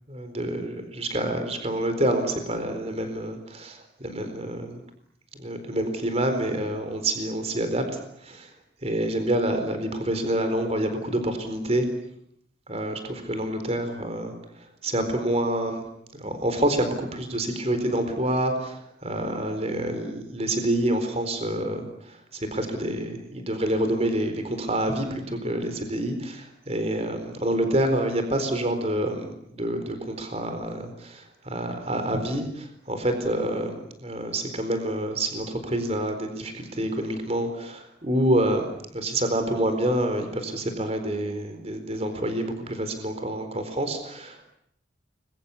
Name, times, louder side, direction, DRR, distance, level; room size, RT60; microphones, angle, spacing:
voice 1, 0.1-4.8 5.4-7.8 8.2-8.5 8.8-11.9 12.7-14.3 14.6-15.8 16.1-44.5, right 1 dB, 35° right, 7 dB, 4.2 m, -27 dB
30.0 x 22.5 x 8.4 m, 0.71 s
head